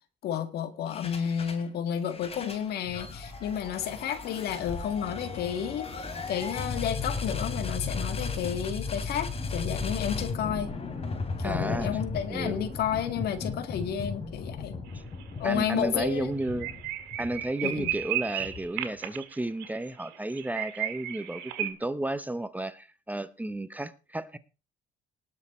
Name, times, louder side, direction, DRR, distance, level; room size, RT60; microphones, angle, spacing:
voice 1, 0.2-10.7 11.4-14.8 15.4-16.3 17.6-17.9, left 9 dB, 70° left, 1.9 m, -31 dB
sound 1, 0.9-1.7 2.0-18.9, left 4 dB, 35° left, 3.3 m, -36 dB
voice 2, 11.4-12.0 12.3-12.7 14.9-15.0 15.4-16.7 17.2-24.4, right 1 dB, 10° right, 0.8 m, -33 dB
sound 2, 14.9-15.2 15.5-15.6 16.0-16.1 16.4-21.7, right 12 dB, 90° right, 2.3 m, -34 dB
19.5 x 6.6 x 4.3 m
cardioid pair, 110°, 17 cm